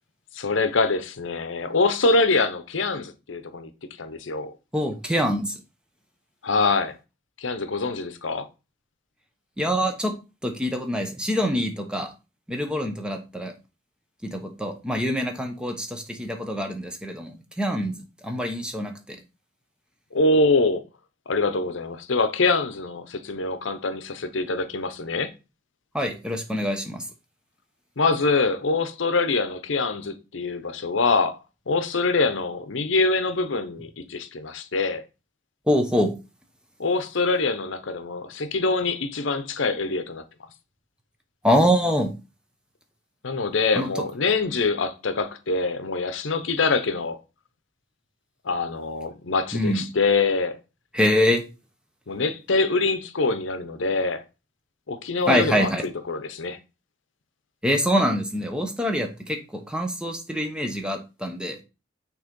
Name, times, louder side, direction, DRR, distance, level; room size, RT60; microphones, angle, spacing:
voice 1, 0.3-3.7 4.0-4.5 6.4-7.0 7.4-8.5 20.1-20.8 21.3-25.3 28.0-31.4 31.7-35.0 36.8-40.2 43.2-47.2 48.4-50.6 52.1-54.2 54.9-56.6, left 3 dB, 75° left, 0.7 m, -24 dB
voice 2, 4.7-5.6 9.6-10.1 10.4-12.1 12.5-13.5 14.2-17.9 18.2-19.2 25.9-27.0 35.7-36.1 41.4-42.1 43.7-43.9 49.5-49.8 50.9-51.4 55.3-55.8 57.6-61.6, equal, 5° right, 0.9 m, -25 dB
6.2 x 3.0 x 5.2 m
head